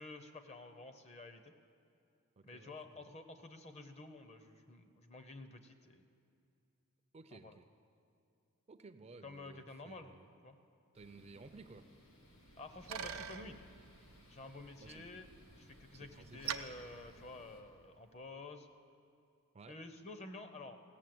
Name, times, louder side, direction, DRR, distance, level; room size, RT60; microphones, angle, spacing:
voice 1, 0.0-1.5 2.4-6.0 7.3-7.6 9.2-10.2 10.4-10.6 12.6-13.6 14.3-15.3 15.6-18.7 19.7-20.8, left 2 dB, 30° left, 8 dB, 0.7 m, -51 dB
voice 2, 2.4-3.1 7.1-7.7 8.7-10.3 10.9-11.9 14.8-15.1 15.9-16.6 19.5-19.8, right 3 dB, 30° right, 9 dB, 0.4 m, -56 dB
sound 1, 10.9-17.6, equal, 75° left, 1.8 m, -63 dB
Bicycle, 12.2-18.0, right 7 dB, 75° right, 0.6 m, -48 dB
16.5 x 7.0 x 7.7 m, 2.6 s
head